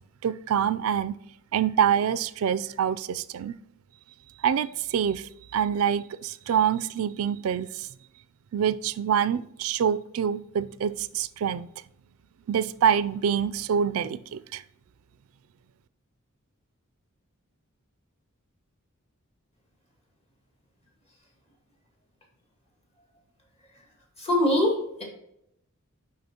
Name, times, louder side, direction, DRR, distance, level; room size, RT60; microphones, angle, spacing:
voice 1, 0.2-1.1 1.5-3.6 4.4-7.9 8.5-11.7 12.5-14.6, right 8 dB, 80° right, 16 dB, 0.3 m, -26 dB
voice 2, 24.2-25.0, left 1 dB, 30° left, 1 dB, 1.9 m, -23 dB
10.5 x 3.9 x 2.9 m, 0.78 s
head